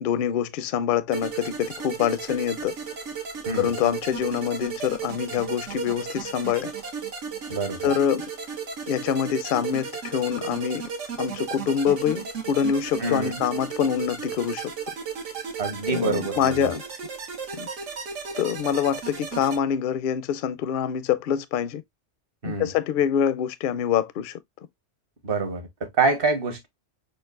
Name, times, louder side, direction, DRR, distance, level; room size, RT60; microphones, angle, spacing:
voice 1, 0.0-2.7 3.6-6.7 7.8-8.2 8.9-10.9 11.2-14.7 15.9-16.8 17.5-17.7 18.4-21.8 22.4-24.3, left 8 dB, 60° left, 0.6 m, -25 dB
sound 1, 1.1-19.6, right 6 dB, 85° right, 1.4 m, -35 dB
voice 2, 7.5-7.9 13.0-13.4 15.6-16.7 22.4-22.7 25.2-26.7, right 3 dB, 50° right, 1.3 m, -26 dB
6.4 x 2.4 x 2.4 m
omnidirectional pair, 1.2 m